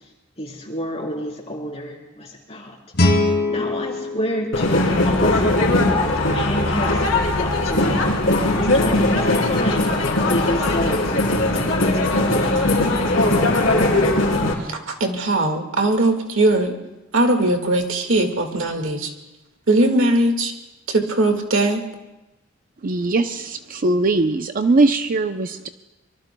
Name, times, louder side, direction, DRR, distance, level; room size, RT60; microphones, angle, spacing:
voice 1, 0.4-2.8 3.5-5.6 6.0-12.8, equal, 35° left, -2 dB, 3.8 m, -30 dB
Guitar, 2.9-5.7, left 2 dB, 55° left, 2.4 m, -23 dB
sound 1, 4.5-14.5, left 2 dB, 75° left, 3.1 m, -19 dB
voice 2, 14.7-16.7 17.1-19.1 19.7-20.5 20.9-21.8, right 2 dB, 70° right, 4 dB, 1.9 m, -20 dB
voice 3, 22.8-25.7, right 2 dB, 45° right, 8 dB, 0.6 m, -20 dB
25.0 x 23.5 x 2.3 m, 1.0 s
head